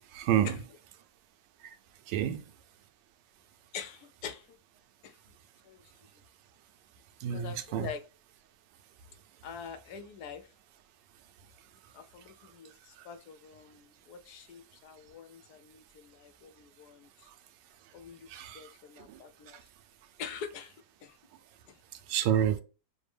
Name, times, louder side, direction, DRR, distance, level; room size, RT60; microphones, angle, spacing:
voice 1, 0.1-0.6 2.1-2.4 7.2-7.9 18.3-18.6 19.1-19.2 22.1-22.6, right 10 dB, 90° right, 1.3 m, -28 dB
voice 2, 3.7-4.6 5.0-5.2 5.6-5.8 7.3-8.0 9.4-10.5 11.9-17.3 17.9-18.3 18.5-19.6 20.2-21.2 21.7-21.8, left 7 dB, 75° left, 1.0 m, -45 dB
5.9 x 2.1 x 3.3 m
omnidirectional pair, 1.9 m